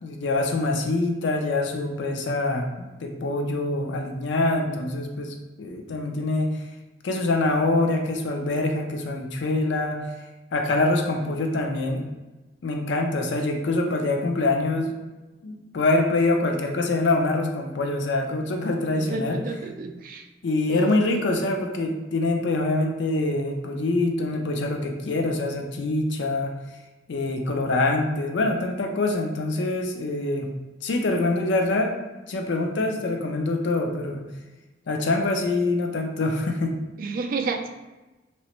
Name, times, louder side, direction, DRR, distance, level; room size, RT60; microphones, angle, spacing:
voice 1, 0.0-6.5 7.0-10.0 10.5-12.0 12.6-14.9 15.4-19.4 20.4-26.5 27.1-30.5 30.8-32.0 32.3-34.2 34.9-36.8, left 2 dB, 75° left, 3 dB, 0.4 m, -25 dB
voice 2, 19.0-20.2 20.7-21.0 37.0-37.7, right 3 dB, 50° right, 6 dB, 0.3 m, -30 dB
3.2 x 3.0 x 3.0 m, 1.1 s
head